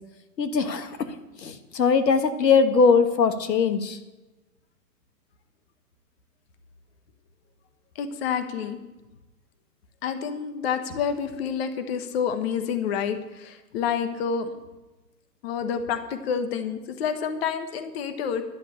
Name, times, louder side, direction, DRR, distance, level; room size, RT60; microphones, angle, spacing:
voice 1, 0.4-4.0, left 5 dB, 90° left, 9 dB, 1.5 m, -21 dB
voice 2, 7.9-8.8 10.0-14.5 15.4-18.4, left 7 dB, 40° left, 9 dB, 1.3 m, -28 dB
11.0 x 7.4 x 8.6 m, 1.1 s
hypercardioid pair, 150°, 48 cm